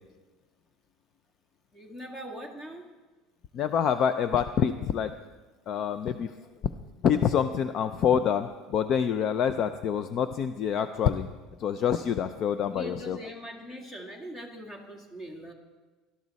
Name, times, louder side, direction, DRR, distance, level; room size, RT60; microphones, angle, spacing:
voice 1, 1.7-2.9 12.7-15.5, equal, 15° left, 2 dB, 1.8 m, -41 dB
voice 2, 3.5-5.1 5.7-6.3 7.0-11.3 11.6-13.2, left 8 dB, 40° left, 10 dB, 0.5 m, -26 dB
18.5 x 12.5 x 4.1 m, 1.3 s
cardioid pair, 160°, 0 cm